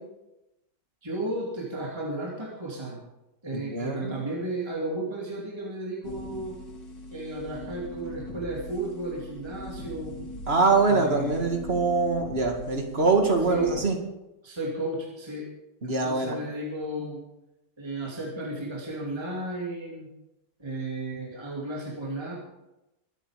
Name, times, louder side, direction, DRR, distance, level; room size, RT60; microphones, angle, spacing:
voice 1, 1.0-3.0 3.4-6.6 7.1-10.2 10.9-11.4 13.5-13.7 14.4-15.5 15.8-17.2 17.8-20.1 20.6-22.3, right 2 dB, 15° right, -3 dB, 2.6 m, -33 dB
voice 2, 3.5-4.1 10.5-14.0 15.8-16.4, right 3 dB, 35° right, 3 dB, 2.2 m, -24 dB
sound 1, 6.0-13.9, equal, 85° left, 2.5 m, -41 dB
23.0 x 8.5 x 5.1 m, 0.95 s
omnidirectional pair, 1.9 m